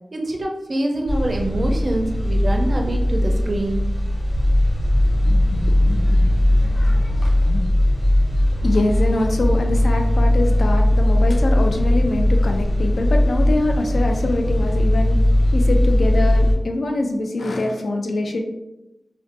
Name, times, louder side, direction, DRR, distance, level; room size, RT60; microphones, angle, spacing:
voice 1, 0.1-3.9 6.3-7.0, right 1 dB, 45° right, 2 dB, 0.4 m, -25 dB
sound 1, 1.1-16.5, left 1 dB, 65° left, 1.2 m, -18 dB
voice 2, 5.2-7.6 8.6-15.2 15.5-18.4, left 2 dB, 85° left, 3 dB, 0.3 m, -24 dB
2.5 x 2.1 x 2.5 m, 0.95 s
wide cardioid pair, 100°, 0 cm